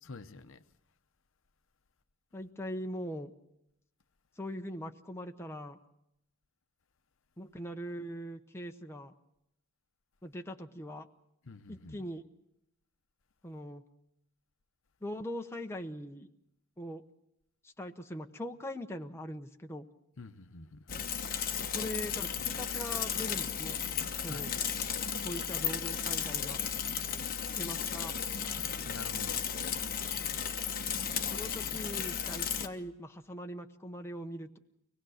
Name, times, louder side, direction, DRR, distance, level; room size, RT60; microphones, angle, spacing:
voice 1, 0.0-0.6 11.4-12.0 20.2-21.1 24.3-24.5 28.8-29.5, left 3 dB, 60° left, 0.8 m, -47 dB
voice 2, 2.3-3.3 4.4-5.8 7.4-9.1 10.2-11.1 11.7-12.2 13.4-13.8 15.0-16.3 16.8-17.0 17.6-19.9 21.7-23.8 24.2-24.5 25.2-26.6 27.6-28.1 28.4-28.5 31.3-34.6, equal, 10° left, 0.8 m, -41 dB
Bicycle / Mechanisms, 20.9-32.7, left 8 dB, 40° left, 1.1 m, -34 dB
24.5 x 19.5 x 6.4 m
head